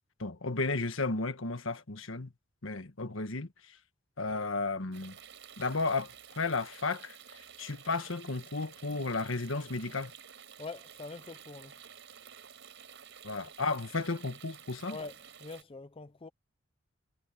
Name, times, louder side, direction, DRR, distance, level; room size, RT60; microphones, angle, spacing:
voice 1, 0.2-2.3 2.6-3.5 4.2-5.2 5.6-7.2 7.6-10.1 13.2-15.0, left 3 dB, 70° left, 1.5 m, -33 dB
sound 1, 4.9-15.6, right 8 dB, 60° right, 5.5 m, -52 dB
voice 2, 10.6-11.7 14.9-16.3, left 3 dB, 25° left, 0.5 m, -44 dB
head